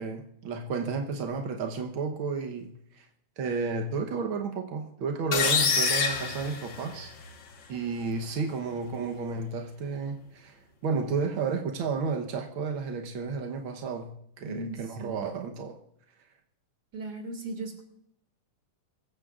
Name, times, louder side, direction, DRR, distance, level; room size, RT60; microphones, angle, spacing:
voice 1, 0.0-3.1 3.4-7.1 7.7-15.8, right 4 dB, 70° right, 1.2 m, -32 dB
sound 1, 5.3-7.3, left 5 dB, 50° left, 1.5 m, -26 dB
voice 2, 14.4-15.3 16.9-17.8, right 2 dB, 30° right, 2.8 m, -38 dB
24.0 x 15.0 x 2.5 m
omnidirectional pair, 3.8 m